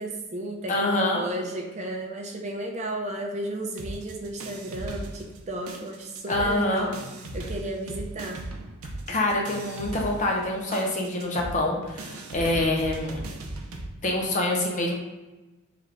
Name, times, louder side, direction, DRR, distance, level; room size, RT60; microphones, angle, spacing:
voice 1, 0.0-7.0 7.3-8.5, right 1 dB, 35° right, 1 dB, 0.5 m, -33 dB
voice 2, 0.7-1.2 6.3-6.9 9.1-13.2 14.0-14.9, left 1 dB, 35° left, -1 dB, 0.7 m, -26 dB
sound 1, 3.8-5.4 5.7-13.9, right 2 dB, 90° right, 0.6 m, -38 dB
3.3 x 3.1 x 3.8 m, 1.1 s
head